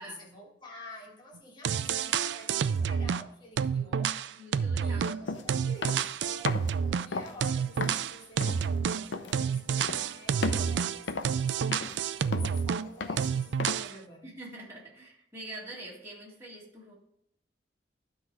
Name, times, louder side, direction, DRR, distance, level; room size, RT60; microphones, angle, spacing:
voice 1, 0.0-4.2 4.8-14.4, left 1 dB, 25° left, 1.9 m, -49 dB
sound 1, 1.4-1.5 1.6-3.3 3.6-7.1 7.4-12.9 13.2-13.9, right 7 dB, 70° right, 0.4 m, -29 dB
voice 2, 4.4-5.0 14.2-16.9, right 2 dB, 15° right, 2.3 m, -45 dB
sound 2, 5.3-5.4 5.8-6.1 6.5-6.7 7.1-7.3 7.8-8.0 8.4-8.7 9.1-9.4 9.8-10.1 10.4-10.7 11.1-11.4 11.7-12.0 12.3-12.6 13.0-13.3 13.6-13.9, left 3 dB, 85° left, 0.6 m, -34 dB
12.0 x 4.0 x 4.8 m
head